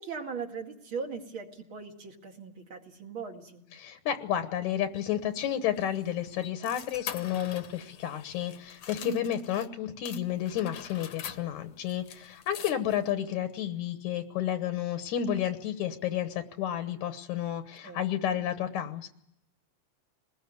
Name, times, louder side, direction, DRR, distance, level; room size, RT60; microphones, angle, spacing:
voice 1, 0.0-3.6 9.0-9.3 17.8-18.0, right 5 dB, 45° right, 3 dB, 2.8 m, -39 dB
voice 2, 3.8-19.1, left 10 dB, 80° left, 10 dB, 2.6 m, -31 dB
sound 1, 4.9-9.7 10.1-13.1, left 9 dB, 60° left, 1.8 m, -45 dB
23.0 x 20.5 x 9.5 m, 0.76 s
omnidirectional pair, 3.3 m